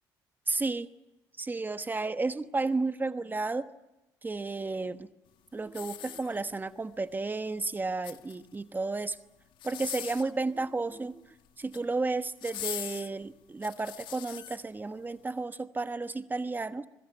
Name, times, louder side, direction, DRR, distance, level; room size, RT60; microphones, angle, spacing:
voice 1, 0.5-0.9 1.4-3.7 4.2-5.1 5.5-9.2 9.6-11.2 11.6-16.9, right 3 dB, 20° right, 11 dB, 1.2 m, -32 dB
sound 1, 5.7-6.7 7.8-8.6 9.5-10.4 11.5-11.9 12.4-14.6 15.2-15.3, left 12 dB, 70° left, 1.6 m, -41 dB
25.5 x 22.5 x 10.0 m, 1.0 s
supercardioid pair, 75°, 9 cm